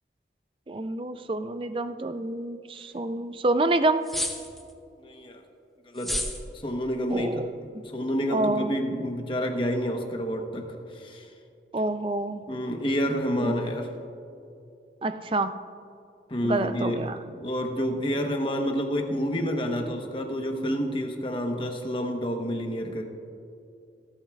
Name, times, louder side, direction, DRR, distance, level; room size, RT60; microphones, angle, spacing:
voice 1, 0.7-4.1 7.1-7.5 8.3-8.7 11.7-12.4 13.4-13.6 15.0-15.5 16.4-17.2, right 2 dB, 30° right, 10 dB, 0.4 m, -27 dB
sound 1, 4.1-4.7 6.0-6.4, left 1 dB, ahead, 0.7 m, -30 dB
voice 2, 5.0-5.4 5.9-6.3 6.5-7.4 7.9-11.3 12.5-13.9 16.3-23.0, equal, 30° left, 3 dB, 1.0 m, -29 dB
25.0 x 9.0 x 2.4 m, 2.6 s
head